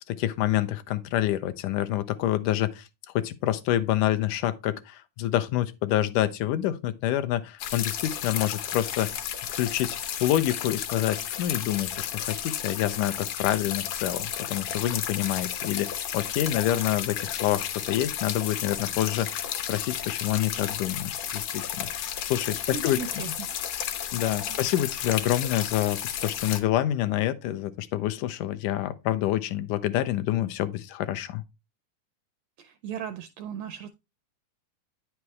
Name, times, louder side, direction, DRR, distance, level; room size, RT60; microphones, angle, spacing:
voice 1, 0.1-2.9 3.2-9.2 9.6-19.4 19.7-23.0 24.1-31.4, left 13 dB, 85° left, 2.2 m, -27 dB
sound 1, 7.6-26.6, left 10 dB, 65° left, 2.1 m, -33 dB
voice 2, 22.7-23.5 24.5-24.6 32.6-33.9, right 7 dB, 80° right, 1.5 m, -37 dB
9.6 x 5.8 x 3.1 m
omnidirectional pair, 3.6 m